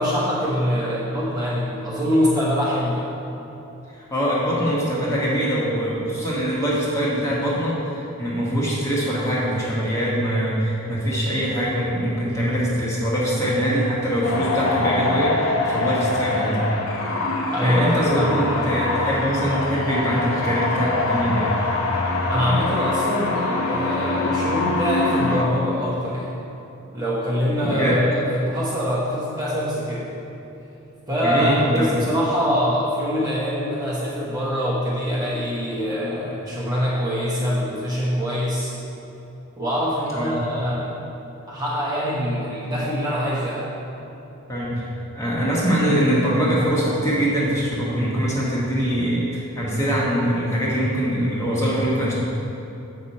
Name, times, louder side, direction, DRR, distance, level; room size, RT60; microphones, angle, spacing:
voice 1, 0.0-3.1 17.5-18.7 22.3-26.3 26.9-30.1 31.1-38.7 39.6-41.0 41.5-43.7, equal, 15° right, -7 dB, 1.0 m, -24 dB
voice 2, 4.1-16.6 17.6-21.6 27.6-28.0 31.2-31.9 35.9-36.0 36.5-36.6 40.1-40.3 44.5-44.9 45.1-52.2, equal, 15° left, -6 dB, 1.3 m, -23 dB
sound 1, 14.2-25.4, left 2 dB, 60° left, 0.8 m, -24 dB
7.9 x 6.0 x 4.3 m, 2.9 s
head